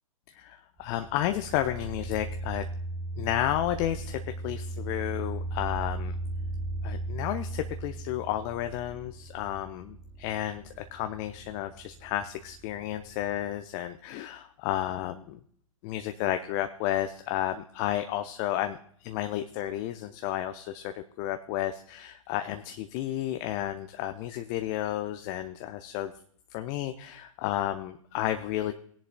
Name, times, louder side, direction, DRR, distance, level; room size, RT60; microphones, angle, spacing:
voice 1, 0.3-2.6 3.2-6.1 6.8-15.4 15.8-26.1 26.5-28.7, left 13 dB, 30° left, 8 dB, 0.6 m, -32 dB
sound 1, 0.8-13.6, right 2 dB, 20° right, 1.0 m, -37 dB
18.0 x 10.5 x 2.2 m, 0.62 s
figure-of-eight pair, 115°, 18 cm